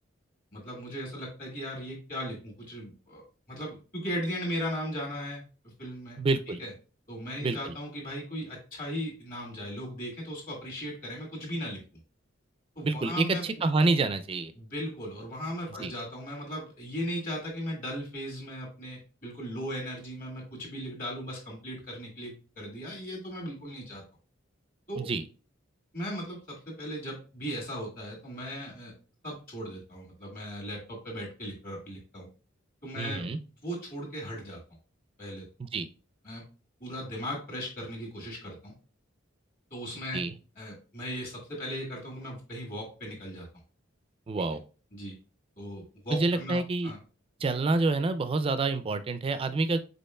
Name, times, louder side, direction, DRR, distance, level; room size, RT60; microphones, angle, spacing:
voice 1, 0.5-3.2 3.5-6.2 6.6-6.7 7.1-11.8 12.8-13.4 14.6-24.0 24.9-25.1 25.9-28.9 29.2-32.3 32.8-33.3 33.6-34.6 35.2-35.4 36.2-36.4 36.8-38.7 39.7-40.2 40.6-43.5 44.9-45.1 45.6-47.0, equal, 45° left, -2 dB, 1.7 m, -37 dB
voice 2, 6.2-6.6 7.4-7.7 12.8-14.5 15.8-15.9 25.0-25.2 33.0-33.4 35.6-35.9 40.1-40.3 44.3-44.6 46.1-46.9 47.4-49.8, right 3 dB, 30° right, 11 dB, 0.3 m, -27 dB
5.3 x 4.1 x 2.2 m, 0.35 s
head